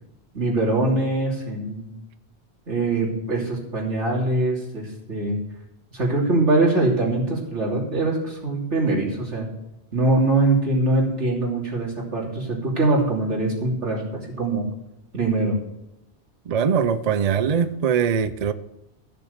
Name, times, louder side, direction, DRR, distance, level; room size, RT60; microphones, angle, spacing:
voice 1, 0.3-1.9 2.7-5.4 5.9-9.5 9.9-14.6 15.1-15.6, right 2 dB, 90° right, -3 dB, 3.4 m, -23 dB
voice 2, 16.5-18.5, right 7 dB, 45° right, 13 dB, 0.6 m, -21 dB
14.0 x 6.9 x 6.7 m, 0.89 s
omnidirectional pair, 1.1 m